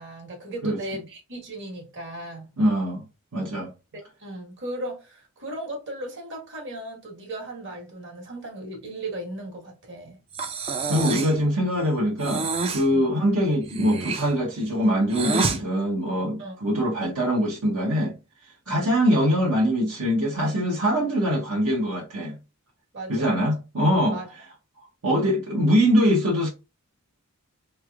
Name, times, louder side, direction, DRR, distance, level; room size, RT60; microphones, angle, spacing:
voice 1, 0.0-2.5 3.9-10.2 12.9-13.2 16.4-16.6 18.6-18.9 22.9-23.5 24.1-24.3, right 1 dB, 55° right, 1.4 m, -36 dB
voice 2, 2.6-3.0 3.3-3.7 10.9-18.1 18.7-22.4 23.1-24.2 25.0-26.5, equal, 75° right, 0.9 m, -23 dB
Breathing, 10.3-11.4 12.2-12.9 13.6-15.6, right 4 dB, 25° right, 0.4 m, -28 dB
3.3 x 3.2 x 2.4 m
head